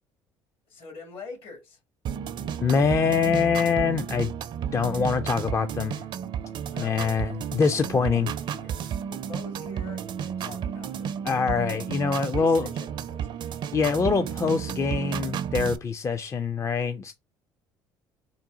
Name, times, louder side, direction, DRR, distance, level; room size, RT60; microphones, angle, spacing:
voice 1, 0.7-1.8 6.7-7.0 8.1-11.1 12.0-13.2, left 4 dB, 60° left, 1.7 m, -44 dB
sound 1, 2.1-15.8, right 8 dB, 50° right, 0.4 m, -32 dB
voice 2, 2.6-4.3 4.7-6.0 6.8-8.3 11.2-12.7 13.7-17.1, left 5 dB, 30° left, 0.4 m, -24 dB
3.9 x 2.4 x 3.7 m
hypercardioid pair, 65°, 10 cm